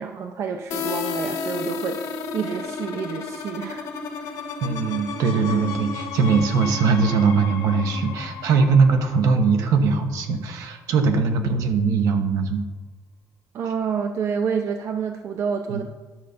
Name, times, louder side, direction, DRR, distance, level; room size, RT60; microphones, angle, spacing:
voice 1, 0.0-3.9 4.2-4.3 13.5-15.8, right 6 dB, 50° right, 5 dB, 0.6 m, -28 dB
sound 1, 0.7-10.3, left 5 dB, 85° left, 1.1 m, -33 dB
voice 2, 4.6-12.6 15.7-15.8, right 5 dB, 75° right, 6 dB, 1.1 m, -21 dB
10.5 x 6.7 x 5.1 m, 1.3 s
cardioid pair, 170°, 6 cm